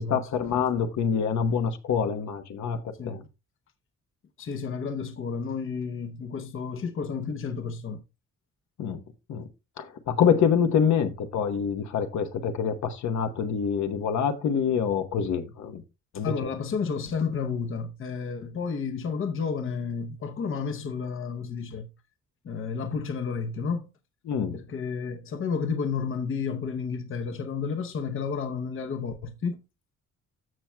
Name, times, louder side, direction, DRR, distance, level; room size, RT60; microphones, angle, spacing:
voice 1, 0.0-3.2 8.8-9.0 9.3-9.5 9.8-15.8 16.1-16.5 24.3-24.6, left 7 dB, 70° left, 1.0 m, -26 dB
voice 2, 4.4-8.0 16.1-21.9 22.4-23.9 24.5-29.6, left 5 dB, 45° left, 0.9 m, -31 dB
14.0 x 5.9 x 2.2 m
cardioid pair, 150°, 30 cm